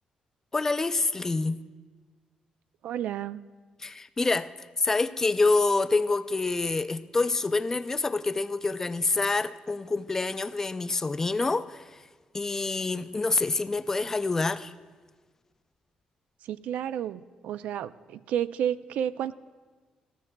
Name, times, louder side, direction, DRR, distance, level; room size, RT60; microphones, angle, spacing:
voice 1, 0.5-1.6 3.8-12.0 12.3-14.7, left 3 dB, 20° left, 0.3 m, -27 dB
voice 2, 2.8-3.4 16.4-19.3, right 10 dB, 85° right, 0.3 m, -31 dB
18.0 x 14.0 x 2.2 m
cardioid pair, 135°, 2 cm